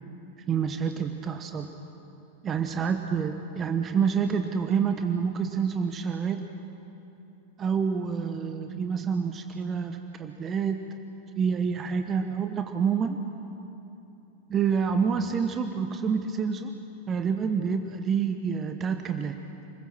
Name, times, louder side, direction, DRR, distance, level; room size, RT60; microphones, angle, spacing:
voice 1, 0.5-1.7 2.4-6.5 7.6-10.8 11.4-13.2 14.5-16.7 17.1-19.4, right 6 dB, 25° right, 6 dB, 1.2 m, -27 dB
29.5 x 21.5 x 6.3 m, 3.0 s
figure-of-eight pair, 90°, 0 cm